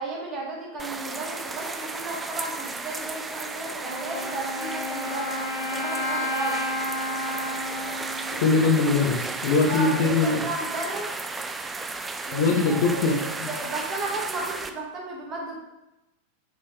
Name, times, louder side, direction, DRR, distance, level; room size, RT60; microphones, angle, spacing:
voice 1, 0.0-6.6 9.7-11.1 12.2-15.6, right 2 dB, 30° right, -2 dB, 1.9 m, -34 dB
sound 1, 0.8-14.7, right 3 dB, 10° right, 0.5 m, -34 dB
Wind instrument woodwind instrument, 3.8-9.6, left 1 dB, 90° left, 1.8 m, -32 dB
voice 2, 8.3-10.4 12.3-13.1 13.4-13.5, left 4 dB, 50° left, 3 dB, 1.0 m, -22 dB
6.6 x 5.6 x 3.3 m, 0.93 s
figure-of-eight pair, 90°, 0 cm